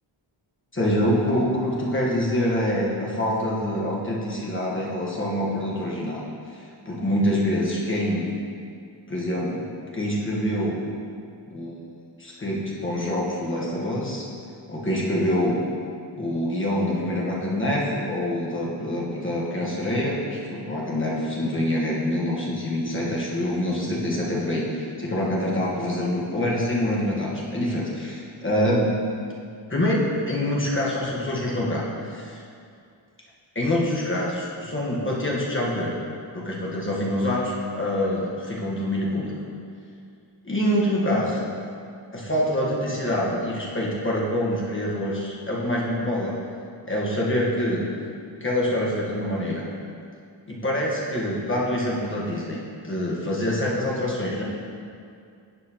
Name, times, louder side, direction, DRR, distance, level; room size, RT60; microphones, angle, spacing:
voice 1, 0.7-6.2 6.5-8.3 9.1-9.6 9.9-10.8 11.5-11.8 12.2-14.3 14.7-15.6 16.1-29.0 29.7-32.4 33.5-36.0 36.3-39.3 40.4-41.4 42.1-46.3 46.8-47.8 48.4-49.6 50.5-52.6 52.8-54.4, left 1 dB, 25° left, -5 dB, 1.3 m, -25 dB
11.0 x 4.9 x 2.9 m, 2.4 s
cardioid pair, 95°, 50 cm